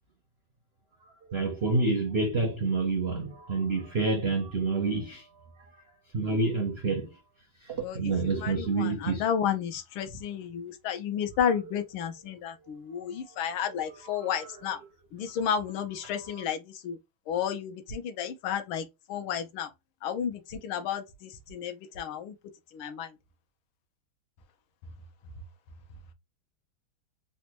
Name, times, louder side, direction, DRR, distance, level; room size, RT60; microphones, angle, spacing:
voice 1, 1.3-5.2 6.1-7.1 7.7-9.2, right 3 dB, 75° right, 0.5 m, -28 dB
voice 2, 7.7-14.8 15.1-17.0 17.3-19.7 20.0-22.3 22.7-23.2, left 8 dB, 85° left, 1.6 m, -32 dB
4.0 x 2.2 x 2.8 m
omnidirectional pair, 2.2 m